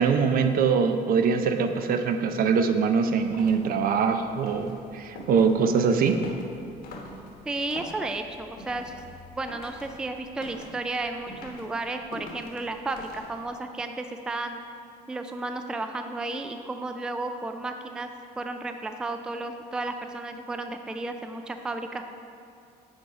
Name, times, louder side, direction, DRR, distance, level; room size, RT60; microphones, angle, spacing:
voice 1, 0.0-6.2, right 5 dB, 60° right, 7 dB, 0.6 m, -23 dB
sound 1, 3.1-13.7, left 2 dB, 65° left, 1.2 m, -46 dB
voice 2, 7.5-9.0 9.3-14.6 15.1-18.1 18.4-22.1, right 2 dB, 5° right, 6 dB, 0.3 m, -33 dB
8.6 x 4.0 x 4.8 m, 2.6 s
cardioid pair, 110°, 17 cm